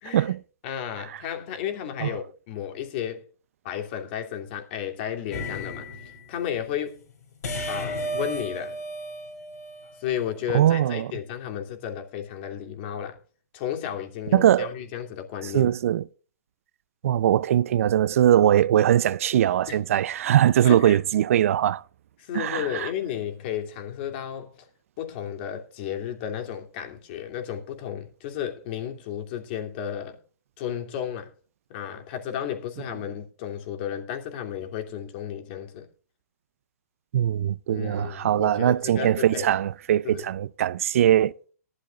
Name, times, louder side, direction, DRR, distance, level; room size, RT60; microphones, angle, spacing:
voice 1, 0.6-3.2 3.6-5.9 6.3-7.0 7.7-8.8 10.0-13.2 13.5-15.7 19.7-19.9 20.6-21.0 22.2-24.7 25.0-30.2 30.6-31.3 31.7-35.9 37.7-39.5 40.0-40.3, left 9 dB, 40° left, 2.6 m, -33 dB
sound 1, 5.3-6.2 7.4-10.2, equal, 70° left, 4.6 m, -33 dB
voice 2, 10.5-11.1 14.3-14.7 15.5-16.0 17.0-21.8 22.3-22.9 37.1-41.3, right 11 dB, 55° right, 0.5 m, -21 dB
18.5 x 12.0 x 2.4 m
hypercardioid pair, 150°, 9 cm